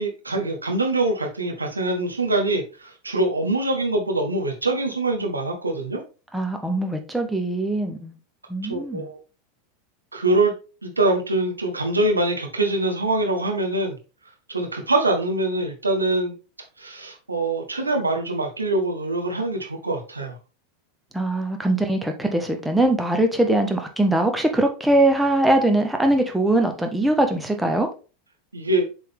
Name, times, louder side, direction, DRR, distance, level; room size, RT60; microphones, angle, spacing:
voice 1, 0.0-6.0 8.6-9.2 10.1-10.5 10.8-14.0 14.5-16.3 16.8-20.3 28.5-28.9, right 2 dB, 90° right, 1.3 m, -24 dB
voice 2, 6.3-8.1 8.5-9.1 21.1-27.9, right 1 dB, 5° right, 1.2 m, -21 dB
7.3 x 3.9 x 3.5 m
figure-of-eight pair, 90°, 0 cm